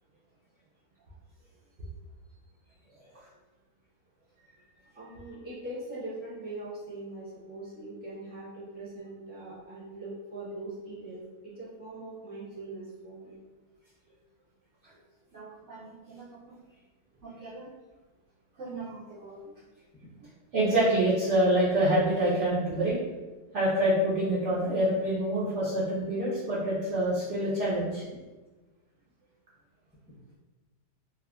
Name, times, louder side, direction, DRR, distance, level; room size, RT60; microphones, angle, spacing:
voice 1, 4.9-13.3, right 2 dB, 10° right, -9 dB, 0.6 m, -41 dB
voice 2, 15.3-16.6 17.2-17.7 18.6-19.3 20.5-23.0 23.5-28.0, right 1 dB, 60° right, -8 dB, 0.8 m, -27 dB
3.4 x 2.1 x 2.3 m, 1.2 s
omnidirectional pair, 1.7 m